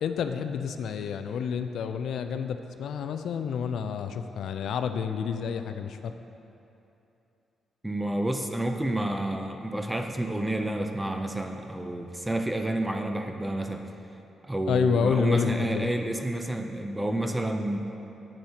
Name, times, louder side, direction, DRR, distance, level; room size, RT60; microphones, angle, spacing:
voice 1, 0.0-6.1 14.7-15.9, left 6 dB, 70° left, 8 dB, 0.3 m, -29 dB
voice 2, 7.8-13.8 14.4-17.8, right 1 dB, 10° right, 5 dB, 0.4 m, -29 dB
8.8 x 7.9 x 2.9 m, 2.8 s
cardioid pair, 135°, 0 cm